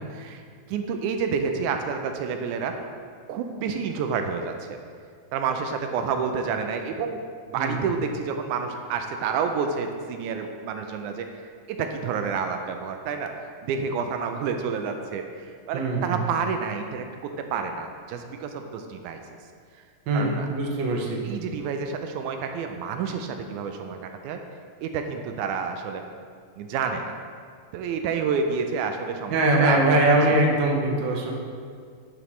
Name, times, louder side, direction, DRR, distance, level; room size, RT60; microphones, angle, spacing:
voice 1, 0.1-0.4 0.7-2.7 3.3-4.8 5.3-7.2 7.5-13.3 13.6-19.2 20.1-20.5 21.2-24.4 24.8-26.0 26.6-27.2 27.7-29.8, right 6 dB, 85° right, 5 dB, 2.0 m, -29 dB
voice 2, 15.7-16.2 20.1-21.2 29.3-31.3, right 2 dB, 65° right, -1 dB, 1.2 m, -22 dB
10.5 x 6.2 x 3.1 m, 2.1 s
omnidirectional pair, 3.5 m